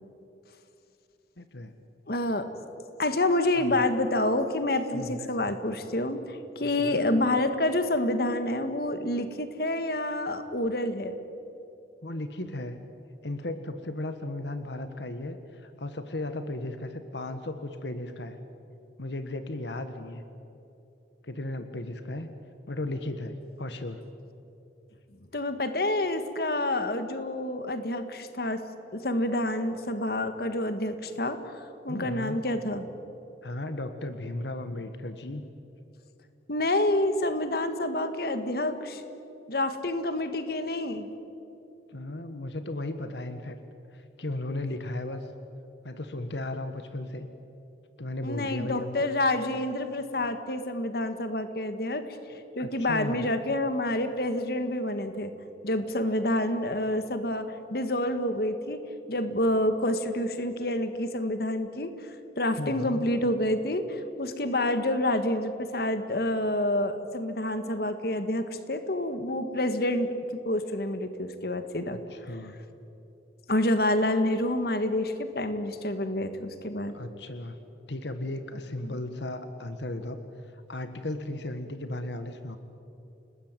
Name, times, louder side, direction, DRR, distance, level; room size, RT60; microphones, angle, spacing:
voice 1, 1.4-1.7 3.6-3.8 4.9-5.3 6.6-7.0 12.0-12.8 13.2-18.4 19.0-20.2 21.2-22.3 22.7-24.0 31.9-32.4 33.4-35.4 41.9-43.6 43.9-45.3 45.8-47.3 48.0-49.1 52.6-53.3 62.6-63.0 72.1-72.5 76.9-77.6 77.9-80.2 80.5-82.6, left 1 dB, 80° left, 9 dB, 1.5 m, -35 dB
voice 2, 2.1-2.5 3.0-11.2 25.3-28.6 28.9-32.9 36.5-39.0 39.5-41.1 48.2-52.0 52.6-55.3 55.6-58.8 59.1-62.1 62.4-70.1 70.5-72.0 73.5-76.9 78.8-79.0, left 1 dB, 60° left, 9 dB, 1.7 m, -28 dB
29.5 x 19.5 x 9.1 m, 2.9 s
head